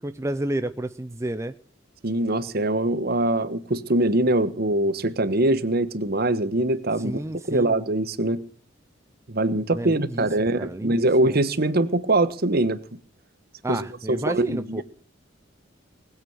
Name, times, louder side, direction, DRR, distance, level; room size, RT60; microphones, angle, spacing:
voice 1, 0.0-1.5 7.0-7.8 9.7-10.3 10.6-11.4 13.6-14.8, right 1 dB, 15° right, 9 dB, 0.6 m, -30 dB
voice 2, 2.0-8.4 9.3-12.8 13.7-14.8, right 2 dB, 50° right, 13 dB, 1.2 m, -23 dB
20.0 x 8.4 x 6.2 m, 0.44 s
head